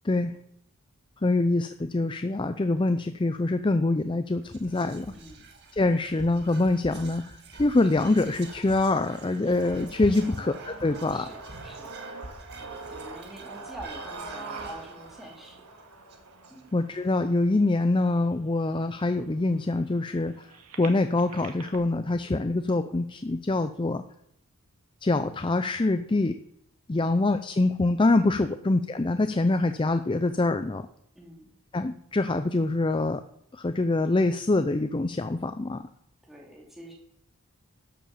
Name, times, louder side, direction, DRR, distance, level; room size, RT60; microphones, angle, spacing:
voice 1, 1.2-5.1 5.7-7.2 7.6-11.2 16.7-20.3 20.8-24.0 25.0-26.4 26.9-30.8 31.7-33.2 33.5-35.8, left 2 dB, 20° left, 9 dB, 0.5 m, -25 dB
Whispering, 4.4-16.9, right 3 dB, 50° right, 1.9 m, -47 dB
voice 2, 5.1-5.4 10.2-10.5 11.1-15.6 16.5-16.7 22.5-22.6 26.9-27.2 28.4-28.6 31.1-31.5 36.3-36.9, right 1 dB, ahead, -2 dB, 2.7 m, -47 dB
sound 1, 8.3-18.3 18.9-19.0 19.3-21.8, right 3 dB, 90° right, 1.9 m, -44 dB
12.5 x 7.6 x 7.2 m, 0.72 s
head